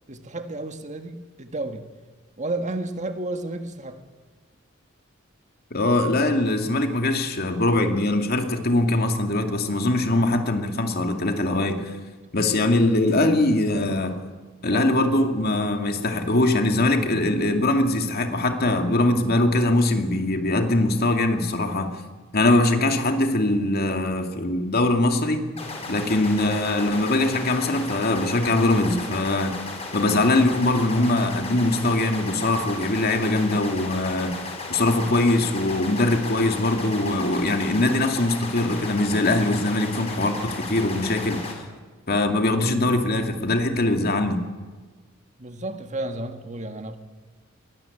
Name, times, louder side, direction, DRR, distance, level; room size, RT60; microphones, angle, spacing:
voice 1, 0.1-1.9 2.4-4.0 12.5-12.7 13.8-14.0 14.7-14.9 45.4-47.0, right 2 dB, 35° right, 7 dB, 1.7 m, -32 dB
voice 2, 5.7-11.9 12.3-14.2 14.6-22.0 22.3-25.4 25.9-29.6 29.9-34.4 34.7-41.4 42.1-44.4, left 2 dB, 50° left, 5 dB, 2.4 m, -22 dB
sound 1, 25.6-41.5, left 3 dB, 30° left, 4.6 m, -35 dB
22.5 x 18.5 x 8.7 m, 1.4 s
head